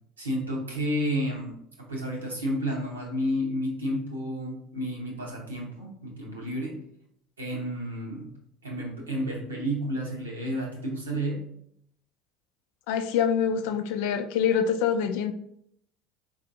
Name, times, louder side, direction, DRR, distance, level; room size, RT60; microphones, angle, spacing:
voice 1, 0.2-1.6 1.9-6.7 7.4-8.3 8.6-11.4, equal, 90° right, -2 dB, 0.9 m, -31 dB
voice 2, 12.9-15.3, left 7 dB, 70° left, 8 dB, 0.3 m, -25 dB
4.2 x 2.6 x 2.6 m, 0.71 s
hypercardioid pair, 65°, 0 cm